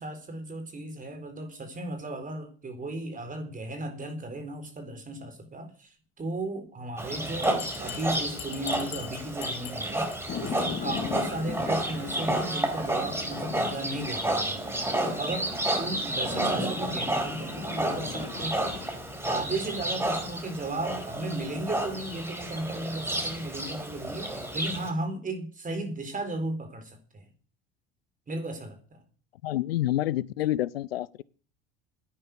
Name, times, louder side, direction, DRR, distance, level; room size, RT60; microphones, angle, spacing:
voice 1, 0.0-14.6 15.0-18.9 19.2-27.3 28.3-29.0, right 2 dB, 30° right, 4.3 m, -35 dB
Livestock farm animals working animals, 7.0-24.9, right 1 dB, 10° right, 4.7 m, -31 dB
Bell, 7.4-10.2 10.5-10.7 11.0-11.1 11.4-11.5 11.8-11.9, left 12 dB, 65° left, 1.9 m, -42 dB
sound 1, 10.3-18.9, left 7 dB, 40° left, 2.1 m, -39 dB
voice 2, 29.4-31.2, left 14 dB, 85° left, 0.6 m, -28 dB
10.5 x 9.9 x 9.5 m
hypercardioid pair, 65°, 29 cm